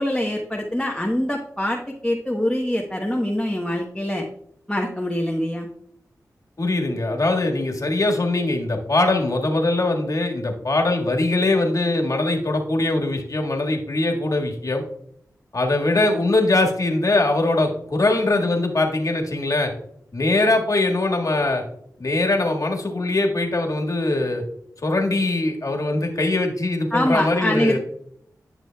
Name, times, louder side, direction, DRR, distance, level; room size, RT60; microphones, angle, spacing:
voice 1, 0.0-4.3 4.7-5.7 26.9-27.8, left 1 dB, 10° left, -1 dB, 1.1 m, -24 dB
voice 2, 6.6-14.8 15.5-19.7 20.1-21.6 22.0-24.4 24.8-27.8, left 2 dB, 55° left, 1 dB, 1.7 m, -21 dB
11.5 x 6.3 x 2.3 m, 0.69 s
cardioid pair, 45°, 7 cm